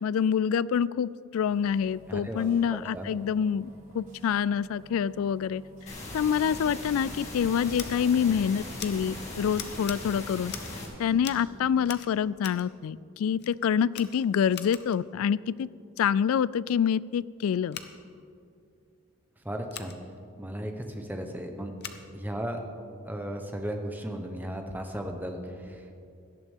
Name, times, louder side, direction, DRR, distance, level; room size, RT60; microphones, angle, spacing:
voice 1, 0.0-5.6 6.1-10.5 11.0-15.7 16.0-17.8, left 8 dB, 80° left, 21 dB, 0.3 m, -26 dB
sound 1, 1.4-11.9, right 2 dB, 70° right, 3.0 m, -50 dB
voice 2, 2.1-2.4 2.9-3.1 19.4-19.9 20.4-21.7 22.1-22.6 23.0-26.0, equal, 10° right, 4 dB, 0.9 m, -35 dB
sound 2, 5.9-10.9, left 2 dB, 30° left, 2.4 m, -39 dB
Scissors, 7.7-7.9 8.8-8.9 9.5-10.0 10.4-10.8 11.2-11.5 11.8-12.7 13.4-13.5 13.9-15.0 17.7-17.9 19.7-19.9 21.8-22.0, left 9 dB, 50° left, 0.8 m, -41 dB
17.5 x 12.0 x 3.6 m, 2.5 s
head